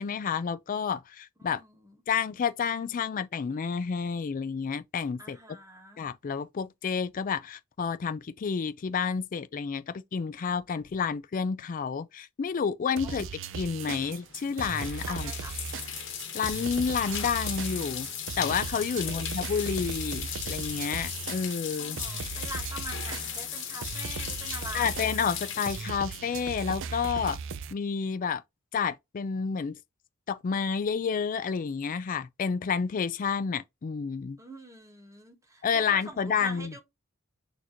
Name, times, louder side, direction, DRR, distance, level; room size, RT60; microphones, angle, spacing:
voice 1, 0.0-1.6 2.1-5.4 6.0-13.3 13.6-15.3 16.3-18.1 18.4-22.0 24.7-27.4 27.7-28.4 28.7-29.8 30.3-34.4 35.6-36.7, left 6 dB, 40° left, 0.4 m, -30 dB
voice 2, 1.4-2.0 5.2-6.0 13.0-13.2 15.0-15.6 19.0-19.2 21.8-25.1 34.4-36.8, right 1 dB, 15° right, 1.3 m, -44 dB
sound 1, 13.0-27.7, right 5 dB, 65° right, 0.5 m, -38 dB
sound 2, 13.8-27.0, left 9 dB, 60° left, 1.3 m, -37 dB
6.4 x 2.6 x 2.9 m
head